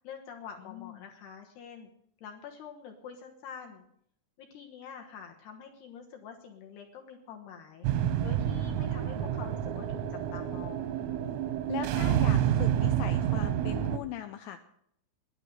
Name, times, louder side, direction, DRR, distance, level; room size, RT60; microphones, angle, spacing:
voice 1, 0.0-1.9 2.2-3.8 4.4-7.9 8.2-10.9, left 7 dB, 70° left, 3 dB, 2.7 m, -46 dB
voice 2, 0.6-1.0 11.7-14.6, left 11 dB, 85° left, 7 dB, 2.5 m, -39 dB
sound 1, 7.8-14.0, right 10 dB, 90° right, 3.8 m, -29 dB
12.0 x 10.5 x 9.1 m, 0.70 s
omnidirectional pair, 5.9 m